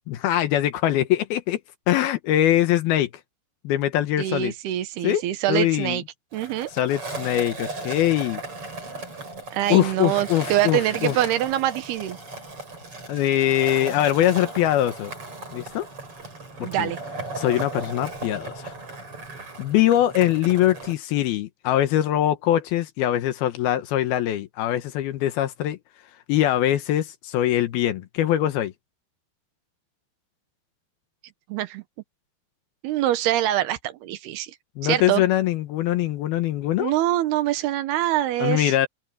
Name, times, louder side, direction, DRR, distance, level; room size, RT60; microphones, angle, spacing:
voice 1, 0.1-1.6 1.9-3.1 3.6-4.5 5.0-5.2 5.5-6.0 6.7-8.4 9.7-11.2 13.1-15.1 15.5-15.9 16.6-16.9 17.4-18.7 19.6-25.8 26.3-28.7 34.8-36.9 38.4-38.9, left 12 dB, 80° left, 3.0 m, -22 dB
voice 2, 4.2-6.0 6.3-6.7 9.5-12.2 16.6-17.0 31.5-31.8 32.8-34.5 34.8-35.2 36.8-38.7, right 13 dB, 90° right, 3.2 m, -24 dB
Skateboard, 6.3-20.9, right 2 dB, 35° right, 7.6 m, -36 dB
open air
omnidirectional pair, 4.4 m